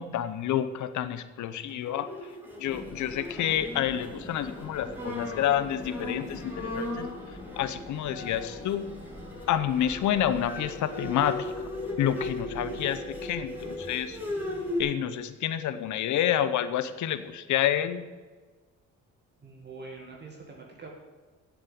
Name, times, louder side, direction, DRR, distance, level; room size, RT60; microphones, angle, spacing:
voice 1, 0.0-2.1 2.6-7.1 7.6-8.9 9.5-11.5 12.0-14.2 14.8-18.0, left 10 dB, 70° left, 12 dB, 0.8 m, -29 dB
Bowed string instrument, 1.8-14.8, left 1 dB, 5° right, 3.0 m, -38 dB
sound 1, 2.7-15.0, left 2 dB, 15° left, 1.9 m, -44 dB
voice 2, 19.4-20.9, right 3 dB, 35° right, 0 dB, 2.0 m, -44 dB
8.0 x 7.5 x 8.7 m, 1.4 s
cardioid pair, 90°, 30 cm